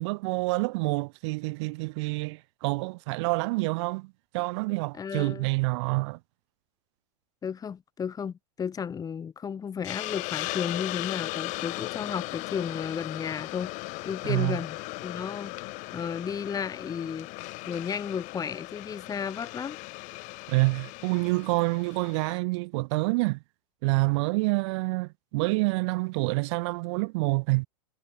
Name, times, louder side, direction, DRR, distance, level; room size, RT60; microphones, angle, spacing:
voice 1, 0.0-4.1 4.3-6.2 14.3-14.6 20.5-23.4 23.8-27.7, right 26 dB, 55° right, 0.9 m, -27 dB
voice 2, 4.9-5.4 7.4-13.7 14.0-17.3 17.7-19.8, left 7 dB, 20° left, 4.8 m, -33 dB
Hiss, 9.8-22.4, left 24 dB, 45° left, 1.8 m, -37 dB
hypercardioid pair, 120°, 18 cm